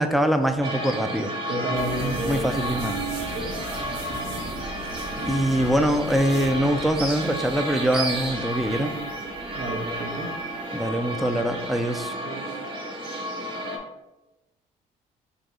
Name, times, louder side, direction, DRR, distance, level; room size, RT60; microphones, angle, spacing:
voice 1, 0.0-1.3 2.0-3.0 5.3-8.9 10.7-12.1, equal, ahead, 7 dB, 0.3 m, -23 dB
sound 1, 0.6-13.8, right 1 dB, 30° right, 0.9 m, -32 dB
voice 2, 1.5-2.8 3.3-4.5 9.5-10.3 12.2-12.6, right 1 dB, 60° right, -3 dB, 0.7 m, -32 dB
sound 2, 1.7-11.9, right 1 dB, 80° right, 1.2 m, -39 dB
3.4 x 3.0 x 3.7 m, 0.99 s
cardioid pair, 110°, 17 cm